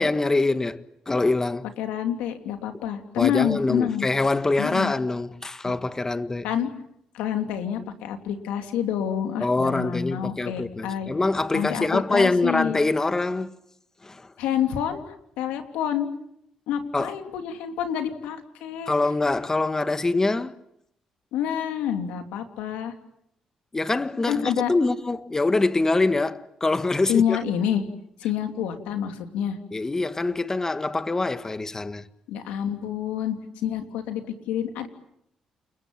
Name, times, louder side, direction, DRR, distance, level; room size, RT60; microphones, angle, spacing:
voice 1, 0.0-1.7 3.2-6.5 9.4-13.5 14.0-14.3 16.9-17.1 18.9-20.5 23.7-27.4 29.7-32.0, left 2 dB, 25° left, 1.6 m, -24 dB
voice 2, 1.8-4.1 4.6-4.9 6.4-6.7 7.1-11.1 11.5-12.8 14.4-16.1 16.7-18.9 21.3-22.9 24.3-24.7 27.1-27.8 28.2-29.6 32.3-33.4 33.6-34.9, left 9 dB, 90° left, 3.0 m, -27 dB
29.5 x 22.0 x 8.8 m
supercardioid pair, 65°, 2 cm